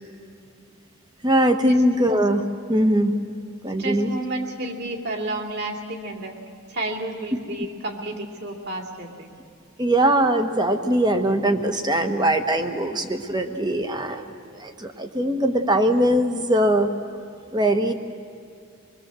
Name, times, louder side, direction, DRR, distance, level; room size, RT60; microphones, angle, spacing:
voice 1, 1.2-3.1 3.6-4.1 9.8-16.9 17.5-17.9, right 1 dB, 20° right, 7 dB, 1.3 m, -21 dB
voice 2, 3.8-6.3 6.7-9.3, right 2 dB, 50° right, 2 dB, 2.8 m, -31 dB
26.5 x 21.5 x 7.7 m, 2.5 s
head